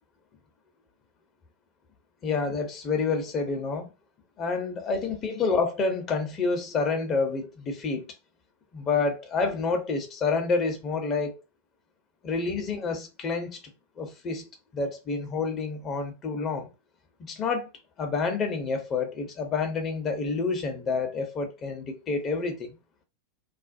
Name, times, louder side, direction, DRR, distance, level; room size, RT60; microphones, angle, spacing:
voice 1, 2.2-3.9 4.4-8.1 8.7-11.4 12.2-13.6 14.0-16.7 17.2-17.7 18.0-22.7, left 4 dB, 30° left, 0.6 m, -28 dB
2.4 x 2.1 x 2.5 m
hypercardioid pair, 95°, 0 cm